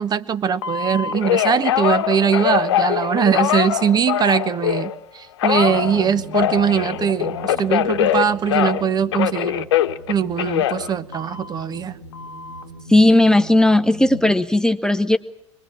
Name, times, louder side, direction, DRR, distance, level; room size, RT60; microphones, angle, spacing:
voice 1, 0.0-9.7 10.1-12.0, right 7 dB, 25° right, 14 dB, 1.1 m, -21 dB
Telephone, 0.6-4.9 5.4-8.9 9.1-11.6 12.1-12.6, left 11 dB, 65° left, 1.1 m, -22 dB
sound 1, 5.5-14.3, right 2 dB, 65° right, 4.2 m, -39 dB
voice 2, 12.9-15.2, left 1 dB, 5° left, 7 dB, 0.9 m, -15 dB
25.0 x 20.5 x 7.6 m, 0.83 s
figure-of-eight pair, 80°, 15 cm